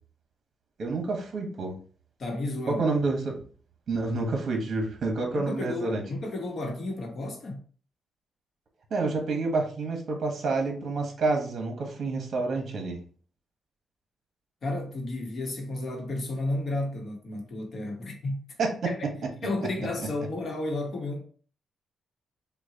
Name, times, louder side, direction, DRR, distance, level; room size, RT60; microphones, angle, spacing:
voice 1, 0.8-1.8 2.7-3.4 3.9-6.0 8.9-13.0 18.6-18.9, right 3 dB, 50° right, 1.1 m, -28 dB
voice 2, 2.2-2.8 5.3-7.6 14.6-18.4 18.8-19.0 19.4-21.2, left 2 dB, 50° left, 1.0 m, -32 dB
5.8 x 2.2 x 2.8 m
cardioid pair, 140°, 0 cm